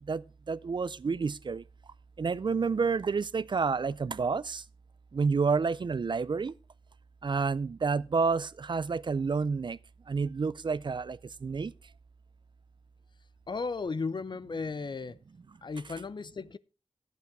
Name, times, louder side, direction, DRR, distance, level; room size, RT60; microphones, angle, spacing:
voice 1, 0.1-1.6 2.2-4.6 5.1-6.5 7.2-9.8 10.1-11.7, right 5 dB, 50° right, 0.4 m, -29 dB
voice 2, 13.5-15.2 15.6-16.6, left 4 dB, 50° left, 0.5 m, -35 dB
10.5 x 8.2 x 4.7 m
wide cardioid pair, 70°, 10 cm